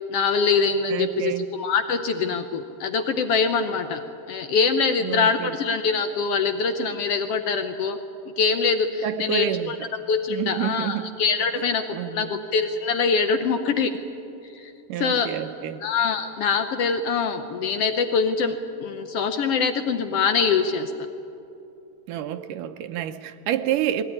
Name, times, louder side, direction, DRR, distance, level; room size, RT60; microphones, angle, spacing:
voice 1, 0.1-4.0 4.3-8.0 8.4-9.8 10.1-11.8 12.1-13.9 14.5-14.7 15.0-15.3 15.8-20.9, left 5 dB, 75° left, 8 dB, 1.4 m, -24 dB
voice 2, 0.9-1.5 5.0-5.5 9.0-9.9 10.3-11.1 11.9-12.4 14.9-15.8 22.1-24.0, right 11 dB, 80° right, 8 dB, 2.2 m, -28 dB
21.0 x 18.0 x 9.8 m, 2.8 s
omnidirectional pair, 3.8 m